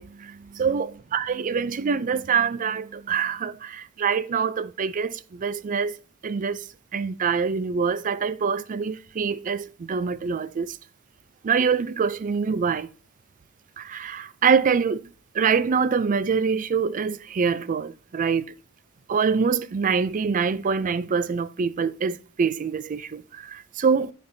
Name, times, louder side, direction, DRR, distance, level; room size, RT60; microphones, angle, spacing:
voice 1, 0.0-6.0 6.2-10.8 11.4-12.9 13.8-15.1 15.3-18.5 19.1-24.1, right 6 dB, 40° right, 0.4 m, -25 dB
13.5 x 5.2 x 2.7 m
head